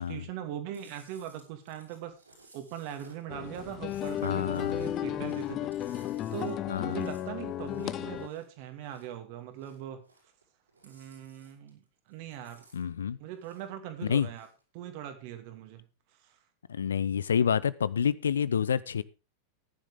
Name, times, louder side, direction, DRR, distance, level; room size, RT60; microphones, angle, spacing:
voice 1, 0.0-2.1 2.5-6.0 6.3-10.0 10.8-12.6 13.2-14.5 14.7-15.8 16.2-16.4, right 10 dB, 45° right, 7 dB, 2.4 m, -41 dB
Chewing mastication, 0.7-9.2 9.5-10.4 10.7-11.8 12.1-13.8 14.1-14.6, right 2 dB, 80° right, 6.0 m, -59 dB
sound 1, 3.3-8.3, left 11 dB, 35° left, 0.8 m, -34 dB
voice 2, 4.2-4.9 6.7-7.0 12.7-13.2 14.0-14.3 16.7-19.0, left 7 dB, 70° left, 19 dB, 0.6 m, -28 dB
15.0 x 10.5 x 3.6 m, 0.30 s
figure-of-eight pair, 90°, 0 cm